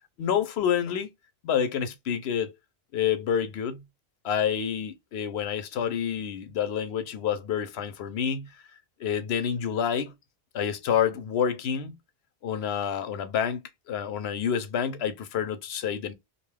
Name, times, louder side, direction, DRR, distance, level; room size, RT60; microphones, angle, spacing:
voice 1, 0.2-1.1 1.4-2.5 2.9-3.8 4.2-8.6 9.0-10.1 10.5-12.0 12.4-13.6 13.9-16.1, left 8 dB, 85° left, 0.9 m, -28 dB
2.6 x 2.3 x 3.3 m
omnidirectional pair, 1.0 m